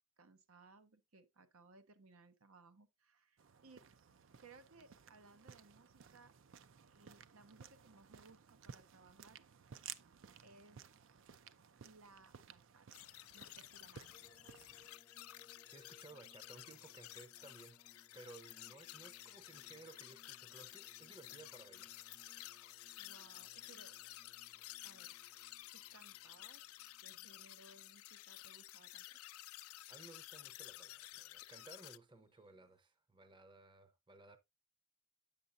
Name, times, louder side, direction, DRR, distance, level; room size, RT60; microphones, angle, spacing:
voice 1, 0.2-3.9 4.4-6.3 6.9-9.4 10.4-10.9 11.8-12.9 13.3-14.1 14.4-14.6 18.6-18.7 23.0-24.0 24.8-25.2 25.7-26.7 27.0-29.2, right 3 dB, 85° right, 0.9 m, -63 dB
sound 1, 3.4-14.9, right 8 dB, 65° right, 0.5 m, -57 dB
sound 2, 12.9-32.0, left 16 dB, 85° left, 0.3 m, -53 dB
sound 3, 14.1-29.4 30.2-30.9 32.4-32.5, left 1 dB, 20° left, 0.6 m, -70 dB
voice 2, 15.7-17.8 18.1-22.0 29.9-34.4, right 2 dB, 20° right, 0.7 m, -58 dB
8.6 x 6.5 x 2.5 m
head